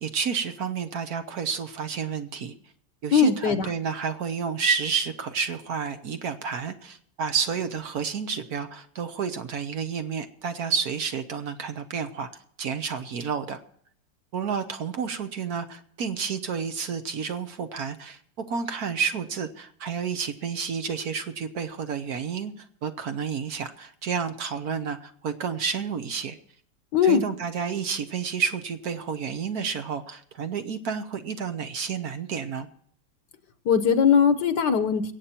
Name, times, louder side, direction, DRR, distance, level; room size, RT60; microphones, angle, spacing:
voice 1, 0.0-2.5 3.0-12.3 12.6-13.6 14.3-26.4 27.0-32.7, right 6 dB, 60° right, 8 dB, 1.4 m, -30 dB
voice 2, 3.1-3.7 26.9-27.2 33.6-35.1, left 7 dB, 75° left, 10 dB, 1.6 m, -20 dB
22.5 x 8.5 x 4.4 m, 0.63 s
omnidirectional pair, 1.9 m